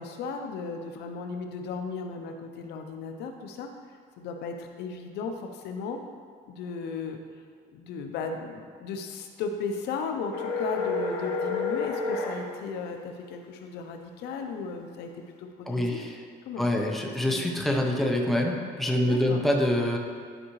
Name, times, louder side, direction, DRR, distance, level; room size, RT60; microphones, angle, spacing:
voice 1, 0.0-3.7 4.2-6.0 6.5-7.2 7.7-15.1 15.4-16.0 16.4-16.7 17.2-17.4 19.0-19.4, left 5 dB, 80° left, 4 dB, 0.7 m, -35 dB
sound 1, 10.3-12.4, left 3 dB, 65° left, 1.5 m, -29 dB
voice 2, 15.7-16.1 16.6-20.0, left 1 dB, ahead, 0 dB, 0.9 m, -25 dB
11.0 x 4.8 x 3.1 m, 2.1 s
cardioid pair, 110°, 17 cm